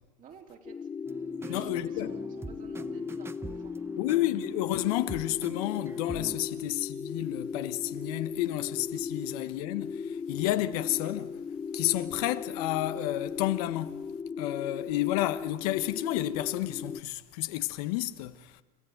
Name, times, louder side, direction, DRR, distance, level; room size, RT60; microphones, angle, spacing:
voice 1, 0.2-0.9 1.4-4.2, right 6 dB, 40° right, 3.3 m, -52 dB
sound 1, 0.6-17.0, left 5 dB, 20° left, 0.6 m, -37 dB
sound 2, 1.1-6.4, right 3 dB, 10° right, 0.9 m, -44 dB
voice 2, 1.5-2.2 3.9-11.4 11.7-14.0 14.4-18.6, left 16 dB, 70° left, 1.1 m, -31 dB
30.0 x 14.0 x 7.9 m
hypercardioid pair, 95°, 20 cm